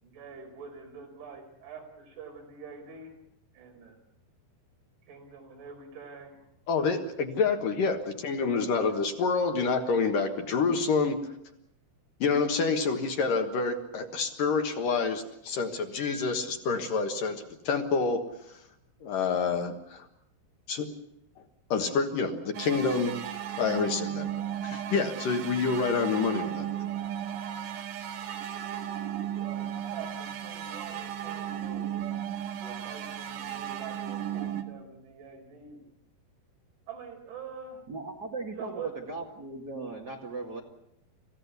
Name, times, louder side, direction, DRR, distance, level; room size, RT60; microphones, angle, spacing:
voice 1, 0.0-3.1 3.5-4.0 5.1-6.4 8.5-8.8 29.4-31.9 32.6-35.8 36.9-37.8 38.6-39.0, right 5 dB, 90° right, 7.0 m, -45 dB
voice 2, 6.7-11.2 12.2-18.6 19.0-20.1 20.7-20.9 21.7-23.2 23.6-24.3 24.6-26.7, left 4 dB, 60° left, 2.6 m, -28 dB
sound 1, 22.5-34.6, right 10 dB, 70° right, 3.8 m, -35 dB
voice 3, 37.9-38.8 39.1-40.6, right 3 dB, 45° right, 1.3 m, -38 dB
27.5 x 16.0 x 8.2 m
omnidirectional pair, 5.2 m